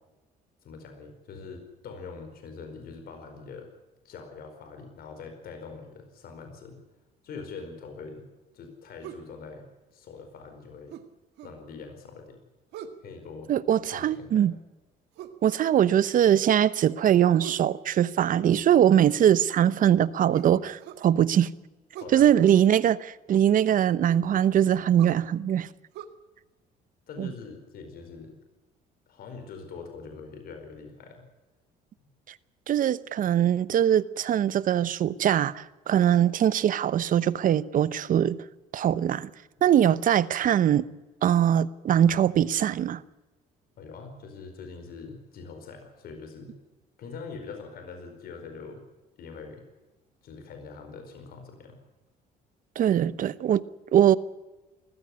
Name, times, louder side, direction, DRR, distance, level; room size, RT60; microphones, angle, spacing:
voice 1, 0.6-3.7 4.0-6.8 7.2-8.3 8.5-9.7 9.9-11.0 11.4-12.4 13.0-13.5 13.9-14.4 22.0-22.3 27.1-28.4 29.1-31.2 43.8-46.6 47.0-48.8 49.2-49.6 50.2-51.8, left 4 dB, 65° left, 4.7 m, -43 dB
sound 1, 9.0-9.3 10.9-11.6 12.7-13.0 15.1-15.4 17.4-17.7 20.3-21.1 21.9-22.2 24.1-24.3 25.0-25.2 25.9-26.1, right 10 dB, 80° right, 1.9 m, -41 dB
voice 2, 13.5-14.5 15.4-21.5 22.1-25.7 27.2-27.3 32.7-38.4 38.7-39.3 39.6-40.8 41.2-43.0 52.8-53.6 53.9-54.2, right 10 dB, 55° right, 0.9 m, -22 dB
20.5 x 15.0 x 9.8 m
cardioid pair, 110°, 17 cm